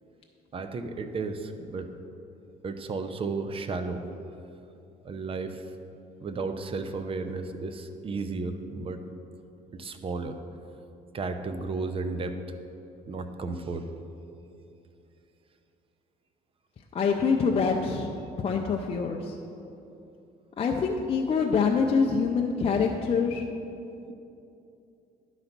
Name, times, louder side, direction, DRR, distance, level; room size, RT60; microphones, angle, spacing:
voice 1, 0.5-1.9 2.6-4.0 5.0-5.6 6.2-9.0 9.8-10.3 11.1-12.4 13.1-13.8, right 3 dB, 35° right, 8 dB, 0.6 m, -33 dB
voice 2, 16.9-18.1 18.4-19.3 20.6-23.5, left 5 dB, 35° left, 1 dB, 0.5 m, -25 dB
11.0 x 4.0 x 5.9 m, 2.8 s
cardioid pair, 110°, 17 cm